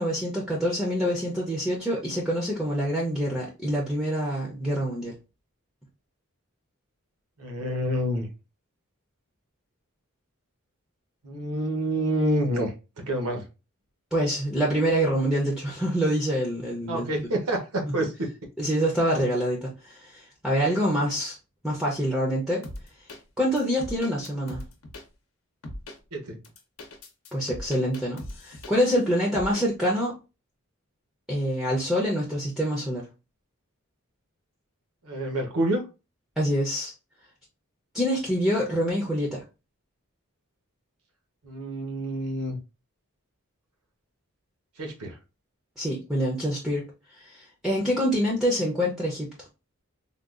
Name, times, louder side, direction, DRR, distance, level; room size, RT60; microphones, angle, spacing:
voice 1, 0.0-5.1 14.1-17.1 17.8-18.3 18.6-19.6 19.9-21.4 21.6-22.6 23.4-24.6 27.3-30.1 31.3-33.0 36.4-36.9 37.9-39.4 45.8-46.9 47.2-49.3, equal, ahead, 0.5 m, -26 dB
voice 2, 7.4-8.3 11.2-13.4 16.9-18.3 26.1-26.4 35.0-35.8 41.4-42.6 44.8-45.2, right 1 dB, 80° right, 0.9 m, -28 dB
sound 1, 22.6-23.2 23.6-25.0 25.6-26.0 26.4-29.0 29.3-29.7, left 1 dB, 70° left, 0.8 m, -40 dB
3.6 x 2.3 x 2.3 m
head